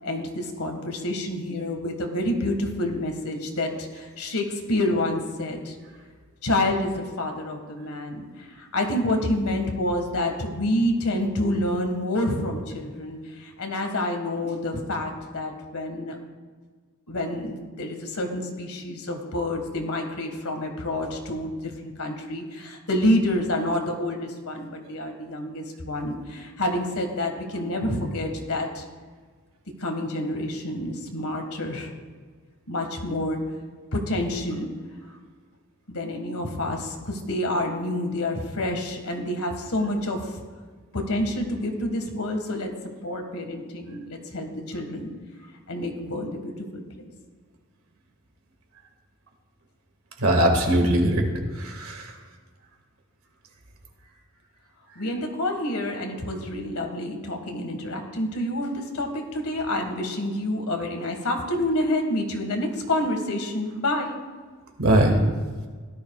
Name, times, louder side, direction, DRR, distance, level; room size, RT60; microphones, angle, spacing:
voice 1, 0.0-5.8 6.4-16.2 17.1-28.8 29.8-31.9 32.7-33.4 33.9-34.7 35.9-40.3 40.9-42.7 43.0-45.1 45.7-47.1 55.0-64.2, left 1 dB, 80° left, 4 dB, 1.7 m, -28 dB
voice 2, 50.2-52.1 64.8-65.2, right 1 dB, 75° right, 3 dB, 1.9 m, -21 dB
17.0 x 12.5 x 2.4 m, 1.5 s
head